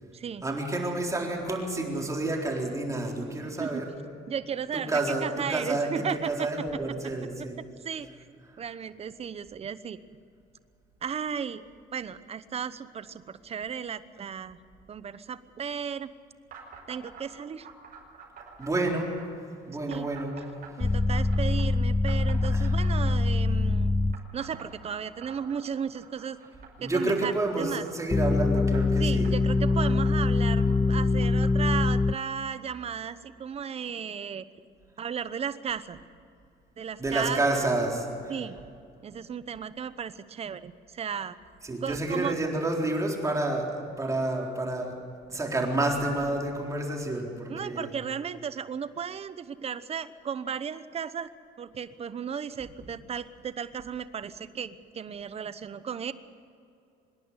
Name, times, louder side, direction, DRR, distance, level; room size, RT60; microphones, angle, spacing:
voice 1, 0.4-3.9 4.7-7.6 18.6-19.1 19.7-20.3 22.5-22.7 26.8-29.3 37.0-38.3 41.6-43.7 44.0-44.9 45.3-47.9, right 2 dB, 20° right, 0 dB, 4.0 m, -29 dB
voice 2, 4.3-6.6 7.0-7.1 7.4-7.5 7.8-10.0 11.0-11.6 11.9-14.6 14.9-16.1 16.9-17.7 19.9-20.1 20.8-24.0 24.3-26.4 26.8-27.8 29.0-34.4 35.0-36.0 36.8-37.7 38.3-38.6 39.0-41.4 41.8-42.4 47.5-51.3 51.6-56.1, right 7 dB, 35° right, 14 dB, 0.9 m, -35 dB
sound 1, 16.5-17.3 17.6-19.3 19.9-21.7 22.1-23.4 24.1-28.0 28.5-32.1, right 6 dB, 55° right, 5.5 m, -48 dB
sound 2, 20.8-24.2 28.1-32.1, left 3 dB, 10° left, 0.5 m, -24 dB
25.0 x 11.0 x 9.6 m, 2.5 s
cardioid pair, 110°, 17 cm